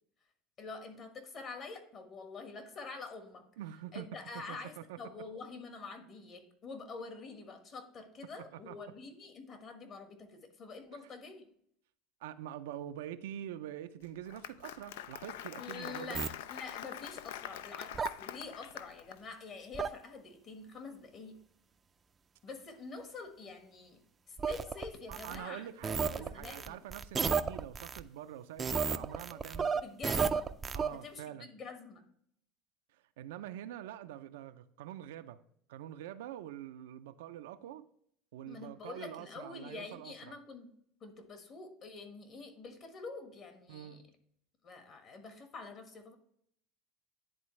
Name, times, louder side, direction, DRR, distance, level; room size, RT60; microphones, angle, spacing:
voice 1, 0.6-3.5 3.9-11.5 15.6-21.4 22.4-24.0 24.3-25.7 26.2-26.8 29.8-30.5 30.9-32.0 38.4-40.7 41.0-44.0 44.6-46.1, left 4 dB, 40° left, 1.5 m, -47 dB
voice 2, 3.6-5.0 8.5-8.7 12.2-16.2 25.1-29.8 30.7-31.5 33.2-35.4 35.7-37.8 38.3-40.3 43.7-44.0, right 12 dB, 90° right, 0.4 m, -45 dB
Applause, 14.0-19.2, left 11 dB, 85° left, 0.3 m, -44 dB
sound 1, 16.1-16.3 17.9-18.1 19.7-19.9 24.4-25.4 25.8-28.0 28.6-30.9, right 6 dB, 25° right, 0.4 m, -33 dB
10.0 x 3.9 x 3.2 m
supercardioid pair, 120°, 0 cm